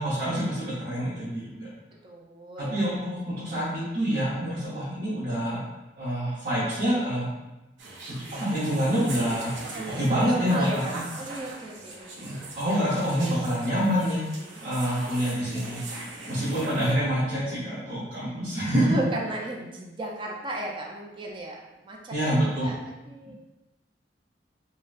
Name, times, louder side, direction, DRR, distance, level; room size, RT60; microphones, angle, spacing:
voice 1, 0.0-1.7 2.6-5.6 6.0-7.3 8.0-9.5 10.0-11.0 12.2-14.2 14.6-15.8 16.3-18.9 22.1-22.7, equal, 55° right, -11 dB, 0.9 m, -27 dB
voice 2, 2.0-2.7 9.7-12.4 18.7-22.8 23.1-23.3, right 2 dB, 30° right, -1 dB, 0.4 m, -35 dB
sound 1, 7.8-16.9, right 2 dB, 85° right, 0.6 m, -40 dB
3.9 x 2.1 x 2.5 m, 1.0 s
head